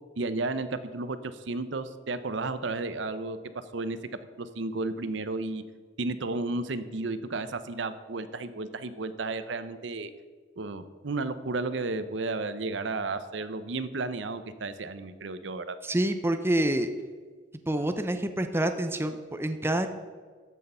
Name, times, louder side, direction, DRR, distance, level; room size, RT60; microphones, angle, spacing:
voice 1, 0.2-4.0 4.4-5.6 6.0-10.1 10.6-15.8, right 3 dB, 65° right, 12 dB, 0.7 m, -33 dB
voice 2, 15.9-16.9 17.7-19.9, right 1 dB, 10° right, 8 dB, 0.6 m, -27 dB
13.5 x 6.4 x 5.5 m, 1.5 s
head